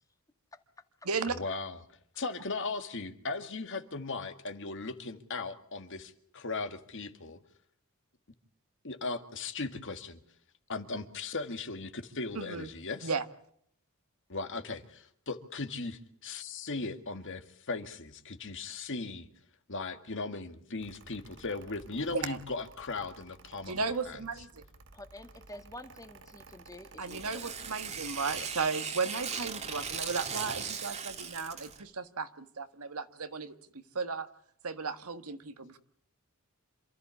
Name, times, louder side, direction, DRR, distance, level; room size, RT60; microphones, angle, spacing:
voice 1, 1.3-1.8 2.2-7.4 8.8-10.2 10.7-13.1 14.3-19.3 19.7-24.2 28.4-28.5, left 3 dB, 55° left, 8 dB, 1.9 m, -38 dB
voice 2, 12.3-12.7 13.0-13.2 22.3-22.4 23.6-24.6 27.0-33.5 33.9-34.3 34.6-35.8, right 4 dB, 75° right, 9 dB, 1.6 m, -35 dB
Mechanical fan, 20.8-28.7, right 3 dB, 55° right, 1.3 m, -55 dB
voice 3, 24.9-27.5, left 1 dB, 15° left, 7 dB, 1.9 m, -48 dB
Tearing, 27.0-31.8, right 6 dB, 30° right, 1.9 m, -38 dB
27.5 x 14.0 x 8.4 m, 0.66 s
head